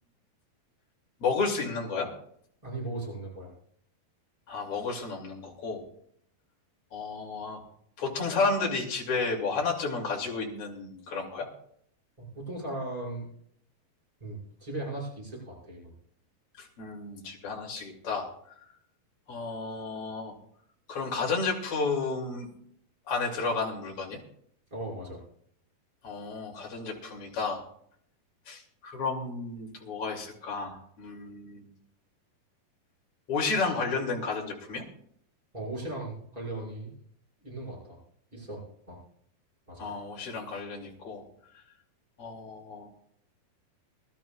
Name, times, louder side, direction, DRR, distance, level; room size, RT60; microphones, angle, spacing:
voice 1, 1.2-2.1 4.5-5.8 6.9-7.6 8.0-11.5 16.6-18.2 19.3-20.3 20.9-22.5 23.1-24.2 26.0-27.6 28.5-31.7 33.3-34.8 39.8-41.2 42.2-42.9, left 4 dB, 40° left, -1 dB, 3.3 m, -32 dB
voice 2, 2.6-3.5 12.2-13.2 14.2-15.9 24.7-25.2 35.5-36.9 37.4-38.0 38.3-39.0 39.7-39.9, right 2 dB, 10° right, -4 dB, 6.0 m, -38 dB
23.5 x 12.5 x 2.4 m, 0.66 s
omnidirectional pair, 4.3 m